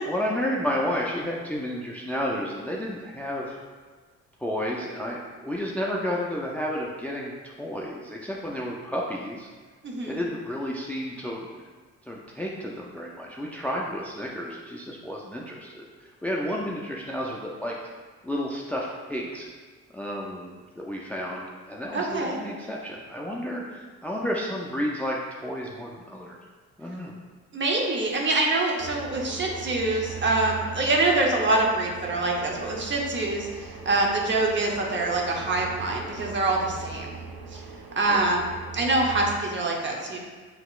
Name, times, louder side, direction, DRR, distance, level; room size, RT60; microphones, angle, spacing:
voice 1, 0.0-3.6 4.4-9.5 10.1-11.5 12.1-17.7 18.2-19.5 19.9-25.2 25.4-26.4 26.8-27.1 38.1-38.2, equal, 5° left, -2 dB, 0.4 m, -31 dB
voice 2, 9.8-10.2 21.9-22.5 27.5-37.2 37.5-37.6 38.0-40.2, right 2 dB, 40° right, 0 dB, 0.8 m, -25 dB
sound 1, 28.8-39.4, right 5 dB, 80° right, 0.6 m, -40 dB
5.7 x 2.9 x 2.4 m, 1.4 s
cardioid pair, 90°, 30 cm